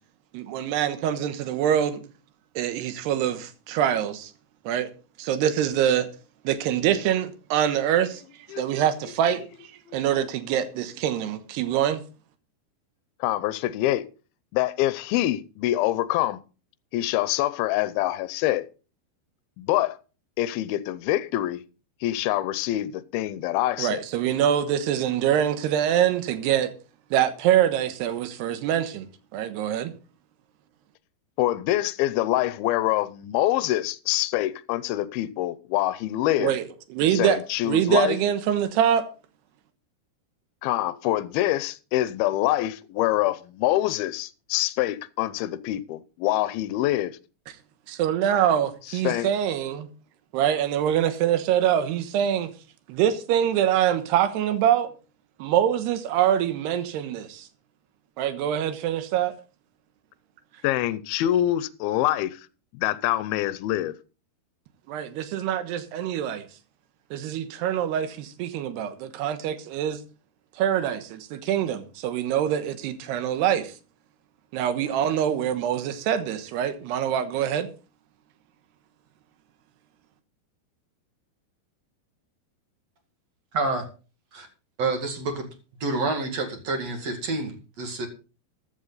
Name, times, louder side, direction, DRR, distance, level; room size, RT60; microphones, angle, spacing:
voice 1, 0.3-2.0 2.6-4.3 4.6-4.9 5.2-6.1 6.4-8.2 8.6-9.4 9.9-12.0 23.8-26.7 27.1-29.1 29.3-29.9 36.4-36.7 36.9-37.4 37.6-39.0 47.9-49.9 50.3-52.5 52.9-54.9 55.4-57.5 58.2-59.3 64.9-66.5 67.1-70.0 70.6-73.7 74.5-77.7, right 10 dB, 90° right, 3.3 m, -24 dB
voice 2, 13.2-14.1 14.5-16.4 16.9-18.7 19.6-20.0 20.4-21.6 22.0-24.0 31.4-36.5 37.1-38.2 40.6-47.2 48.9-49.3 60.6-62.4 62.8-63.9, left 14 dB, 80° left, 2.5 m, -25 dB
voice 3, 83.5-83.9 84.3-84.5 84.8-85.5 85.8-88.1, right 3 dB, 45° right, 2.9 m, -28 dB
14.5 x 11.0 x 4.0 m
omnidirectional pair, 4.6 m